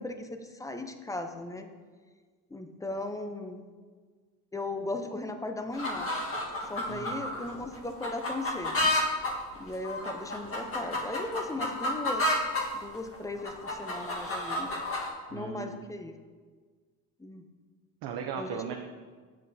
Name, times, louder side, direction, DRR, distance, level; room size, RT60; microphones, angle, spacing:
voice 1, 0.0-1.7 2.5-3.6 4.5-6.1 6.7-8.9 9.6-12.4 12.7-14.7 15.3-16.1 17.2-17.4 18.4-18.7, left 2 dB, 10° left, 6 dB, 0.6 m, -37 dB
sound 1, 5.7-12.7 13.1-15.1, left 1 dB, 30° left, 1.5 m, -31 dB
voice 2, 6.9-7.3 15.3-15.7 18.0-18.7, right 7 dB, 65° right, 2 dB, 0.7 m, -37 dB
7.4 x 7.4 x 2.7 m, 1.5 s
supercardioid pair, 80°, 42 cm